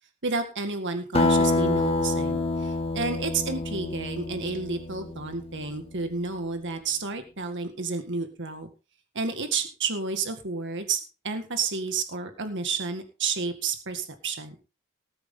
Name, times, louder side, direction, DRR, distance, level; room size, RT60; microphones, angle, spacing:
voice 1, 0.2-8.7 9.1-14.7, right 4 dB, 55° right, 6 dB, 1.9 m, -31 dB
Acoustic guitar, 1.1-6.0, left 2 dB, 25° left, 1.5 m, -27 dB
19.5 x 8.1 x 3.8 m, 0.31 s
head